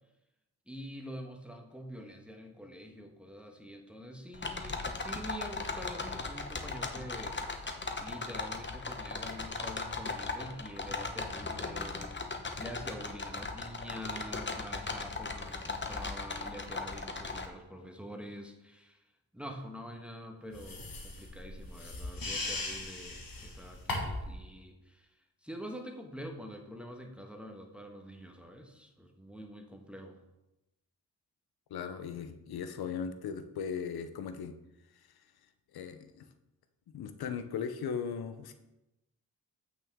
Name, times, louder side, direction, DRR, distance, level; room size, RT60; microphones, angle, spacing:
voice 1, 0.7-19.0 19.3-30.2, equal, 5° right, 3 dB, 1.3 m, -46 dB
sound 1, 4.3-17.5, left 3 dB, 30° left, 1.0 m, -38 dB
sound 2, 20.5-24.3, left 2 dB, 70° left, 1.7 m, -38 dB
voice 2, 31.7-34.5 35.7-36.2 36.9-38.5, left 6 dB, 90° left, 10 dB, 0.7 m, -38 dB
8.3 x 6.1 x 3.6 m, 0.97 s
cardioid pair, 55°, 36 cm